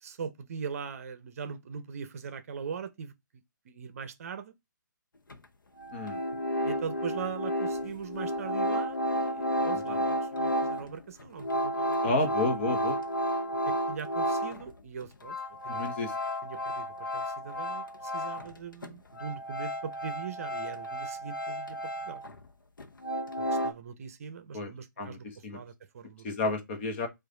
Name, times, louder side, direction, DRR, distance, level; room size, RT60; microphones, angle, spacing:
voice 1, 0.0-3.1 3.7-4.5 6.6-12.0 13.7-15.4 15.6-16.1 16.4-16.9 17.1-21.8 22.0-22.2 23.4-25.3 25.5-26.3, right 6 dB, 45° right, 0.7 m, -41 dB
sound 1, 5.3-5.4 5.8-14.7 15.0-18.6 18.8-22.5 22.8-23.7, equal, 90° left, 0.9 m, -32 dB
voice 2, 12.0-13.0 15.7-16.1 24.5-24.7 25.0-25.6 26.2-27.1, left 2 dB, 35° left, 1.1 m, -31 dB
4.8 x 2.5 x 3.8 m
hypercardioid pair, 150°, 11 cm